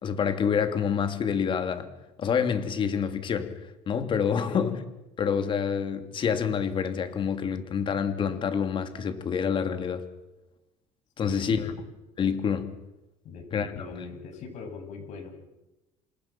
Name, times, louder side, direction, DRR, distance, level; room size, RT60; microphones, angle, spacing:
voice 1, 0.0-1.9 2.2-3.5 3.9-4.8 5.2-10.0 11.2-11.7 12.2-12.7 13.5-13.7, left 7 dB, 35° left, 8 dB, 2.9 m, -27 dB
voice 2, 11.2-11.8 13.2-15.3, left 4 dB, 55° left, 4 dB, 7.8 m, -41 dB
28.0 x 27.0 x 6.0 m, 1.0 s
cardioid pair, 125°, 14 cm